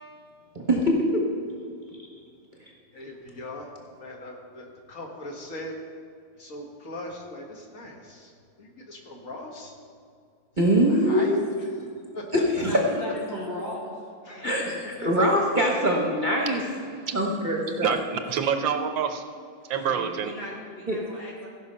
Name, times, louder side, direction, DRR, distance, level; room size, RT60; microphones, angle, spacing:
voice 1, 0.5-1.2 10.6-11.4 12.3-12.8 14.4-14.7 15.0-16.6 17.1-18.0 20.9-21.0, equal, 30° right, -1 dB, 1.2 m, -23 dB
voice 2, 2.9-5.8 6.3-9.7 10.9-12.4 14.2-14.6 15.0-15.2, left 1 dB, 45° left, 0 dB, 1.8 m, -40 dB
voice 3, 12.6-13.9 14.3-14.7 19.7-21.5, left 1 dB, 80° left, -7 dB, 4.0 m, -37 dB
voice 4, 17.8-19.2 19.7-20.3, right 7 dB, 85° right, 7 dB, 1.6 m, -26 dB
16.0 x 5.7 x 5.5 m, 2.2 s
omnidirectional pair, 2.0 m